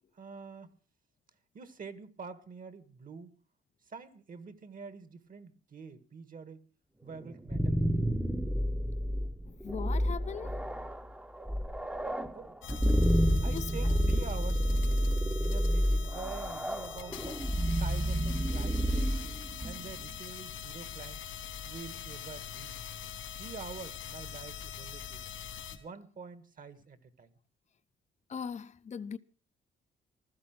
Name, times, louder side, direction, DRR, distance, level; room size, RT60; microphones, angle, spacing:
voice 1, 0.2-0.8 1.5-3.3 3.9-6.6 7.0-7.8 12.3-12.6 13.4-15.1 15.4-17.4 17.8-19.1 19.6-21.2 21.6-22.8 23.3-25.3 25.8-27.4, right 5 dB, 45° right, 1.7 m, -46 dB
sound 1, 7.2-20.1, equal, 5° right, 1.0 m, -30 dB
voice 2, 9.5-10.6 13.5-13.9 28.3-29.2, left 6 dB, 35° left, 0.8 m, -40 dB
sound 2, 12.6-25.8, left 9 dB, 85° left, 2.9 m, -43 dB
15.5 x 13.0 x 6.0 m
cardioid pair, 90°, 20 cm